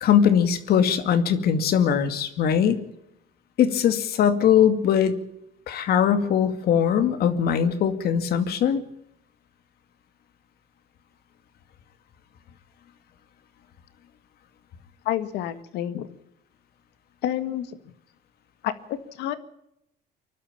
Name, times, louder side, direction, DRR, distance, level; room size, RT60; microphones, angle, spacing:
voice 1, 0.0-2.8 3.6-5.1 5.7-8.8, left 8 dB, 65° left, 9 dB, 2.3 m, -21 dB
voice 2, 15.1-16.1 17.2-17.9 18.6-19.4, left 12 dB, 85° left, 11 dB, 1.7 m, -29 dB
24.5 x 12.0 x 8.8 m, 0.81 s
cardioid pair, 110°, 17 cm